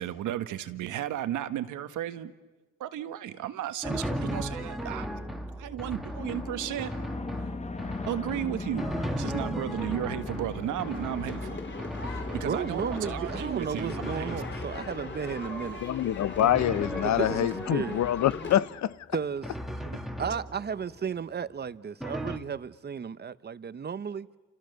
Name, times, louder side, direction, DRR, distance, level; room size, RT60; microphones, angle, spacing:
voice 1, 0.0-2.3 2.8-5.1 5.6-6.9 8.1-11.6 12.0-14.4 19.8-20.0, right 12 dB, 85° right, 1.5 m, -34 dB
Drum, 3.8-15.2 16.4-18.4 19.4-20.9 22.0-22.4, equal, ahead, 1.9 m, -36 dB
sound 1, 6.2-21.8, left 4 dB, 25° left, 1.1 m, -42 dB
sound 2, 10.1-18.6, left 4 dB, 40° left, 5.1 m, -40 dB
voice 2, 12.4-15.8 17.0-18.0 19.1-19.5 20.2-24.3, right 7 dB, 35° right, 0.9 m, -34 dB
voice 3, 15.8-19.0, left 11 dB, 65° left, 0.8 m, -26 dB
29.0 x 28.0 x 6.6 m
cardioid pair, 90°, 30 cm